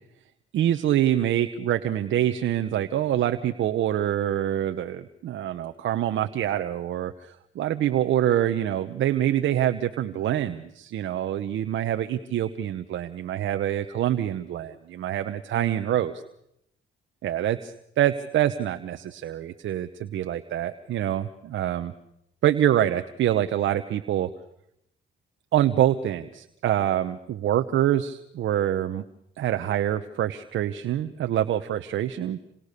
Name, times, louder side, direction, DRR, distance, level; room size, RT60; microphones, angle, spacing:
voice 1, 0.5-16.2 17.2-21.9 22.4-24.3 25.5-29.0 29.4-32.4, right 11 dB, 70° right, 9 dB, 1.1 m, -25 dB
27.5 x 27.0 x 6.8 m, 0.77 s
cardioid pair, 90°, 20 cm